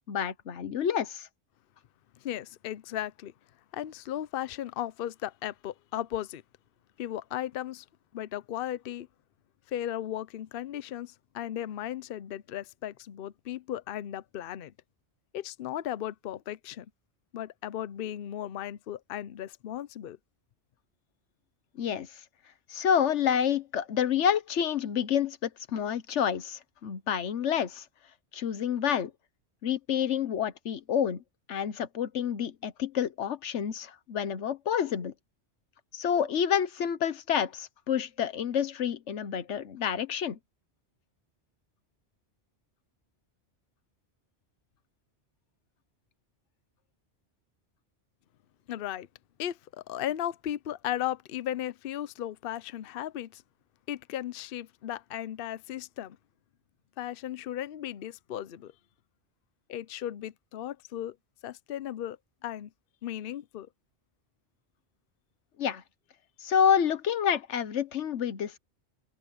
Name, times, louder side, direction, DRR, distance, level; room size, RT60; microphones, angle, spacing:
voice 1, 0.1-1.3 21.8-22.1 22.7-27.8 28.3-29.1 29.6-31.2 31.5-35.1 35.9-40.4 65.6-65.8 66.4-68.6, left 8 dB, 85° left, 1.2 m, -28 dB
voice 2, 2.2-3.3 3.7-6.4 7.0-7.8 8.1-9.1 9.7-14.7 15.3-16.9 17.3-20.2 48.7-49.1 49.4-53.4 53.9-56.2 57.0-58.7 59.7-61.2 61.4-62.2 62.4-62.7 63.0-63.7, left 11 dB, 60° left, 0.8 m, -36 dB
open air
omnidirectional pair, 1.2 m